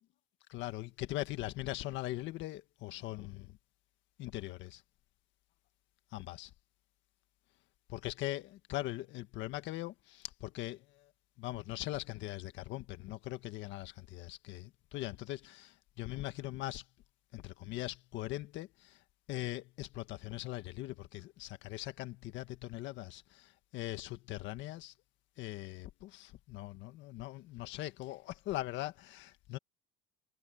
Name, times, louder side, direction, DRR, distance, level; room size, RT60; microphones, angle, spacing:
voice 1, 0.5-3.6 4.2-4.8 6.1-6.5 7.9-11.1 11.4-16.8 17.3-19.0 19.3-24.9 25.4-29.6, left 16 dB, 60° left, 1.7 m, -41 dB
cardioid pair, 130°, 21 cm